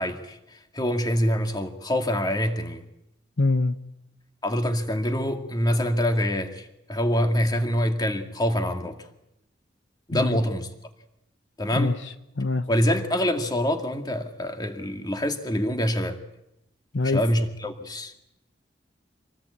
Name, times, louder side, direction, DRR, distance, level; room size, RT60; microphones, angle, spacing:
voice 1, 0.0-2.8 4.4-9.0 10.1-10.7 11.6-12.0 12.7-16.2 17.0-18.1, equal, 20° left, 2.1 m, -25 dB
voice 2, 3.4-3.8 10.1-10.4 11.7-12.6 16.9-17.2, left 3 dB, 80° left, 0.9 m, -24 dB
26.0 x 19.0 x 8.4 m
head